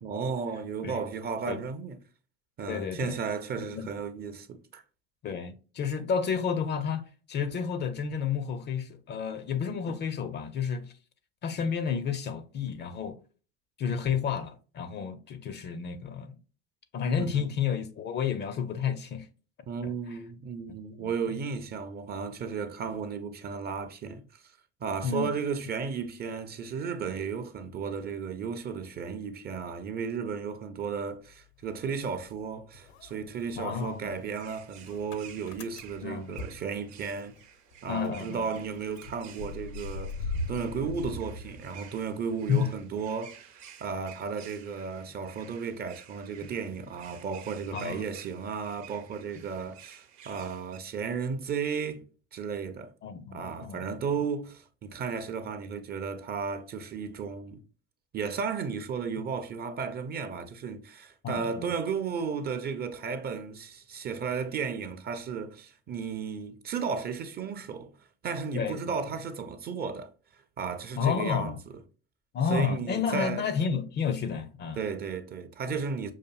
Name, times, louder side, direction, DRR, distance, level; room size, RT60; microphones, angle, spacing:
voice 1, 0.0-2.0 2.6-4.8 17.2-17.5 19.7-24.4 24.8-37.4 37.8-43.4 43.8-52.9 53.3-57.6 58.1-67.9 68.2-70.1 70.6-71.5 72.5-73.5 74.8-76.1, right 5 dB, 30° right, 0.5 m, -34 dB
voice 2, 2.7-3.2 3.6-3.9 5.2-7.0 7.3-10.9 11.4-13.2 13.8-16.4 16.9-19.3 19.8-20.2 21.0-21.1 25.0-25.3 33.6-34.1 36.0-36.4 37.9-38.5 42.5-42.7 47.7-48.0 53.0-54.0 61.2-61.7 68.5-68.9 71.0-71.6 72.3-74.8, left 7 dB, 30° left, 0.5 m, -31 dB
Motor vehicle (road) / Engine starting, 31.2-32.4 32.7-37.4 37.7-37.8 38.0-42.2, left 2 dB, 65° left, 0.7 m, -40 dB
sound 1, 33.7-50.8, right 9 dB, 65° right, 0.8 m, -52 dB
sound 2, 39.4-39.8 40.5-41.1 42.3-42.7 43.4-45.8 46.4-46.8 47.9-48.3 49.0-49.1 49.3-49.7 50.8-51.4 51.7-51.8 52.0-52.1 52.5-52.9 53.2-54.2 54.7-55.1 55.5-56.6 56.9-57.0, left 4 dB, 85° left, 1.3 m, -58 dB
5.7 x 2.5 x 2.3 m
hypercardioid pair, 80°, 34 cm